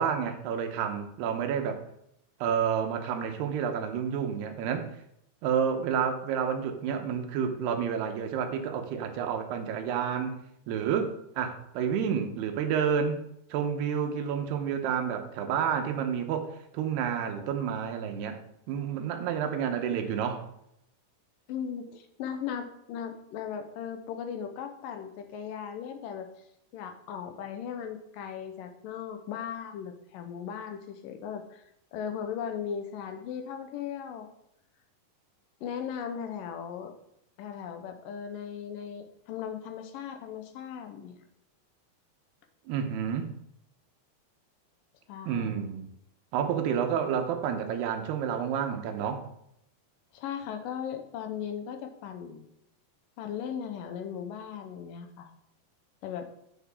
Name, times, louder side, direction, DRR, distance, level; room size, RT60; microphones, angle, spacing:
voice 1, 0.0-1.8 2.4-4.9 5.4-10.4 10.7-13.2 13.5-18.4 18.7-20.5 42.7-43.3 45.3-45.9 46.3-49.3, right 7 dB, 90° right, 6 dB, 3.1 m, -30 dB
voice 2, 21.5-26.3 26.7-31.6 31.9-34.3 35.6-37.0 37.4-41.2 45.1-45.6 50.1-52.5 53.2-55.3 56.0-56.3, left 8 dB, 75° left, 7 dB, 2.3 m, -37 dB
9.7 x 9.4 x 3.7 m, 0.75 s
omnidirectional pair, 4.5 m